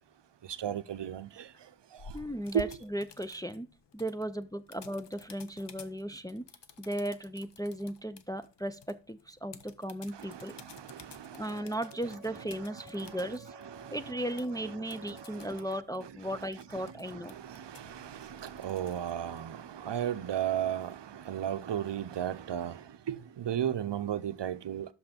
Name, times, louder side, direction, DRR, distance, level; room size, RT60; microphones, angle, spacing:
voice 1, 0.6-1.4 2.5-2.8 10.3-11.6 12.0-12.7 12.9-14.3 14.6-15.6 16.0-16.4 16.7-22.8 23.1-24.9, right 10 dB, 70° right, 0.6 m, -36 dB
sound 1, 2.0-19.9, left 5 dB, 65° left, 0.9 m, -56 dB
voice 2, 2.1-3.7 3.9-6.4 6.8-10.6 11.3-13.5 13.9-17.3, right 1 dB, 10° left, 0.4 m, -36 dB
Wind instrument woodwind instrument, 11.5-16.0, right 1 dB, 20° right, 2.0 m, -53 dB
6.2 x 5.8 x 5.1 m
wide cardioid pair, 75°, 45 cm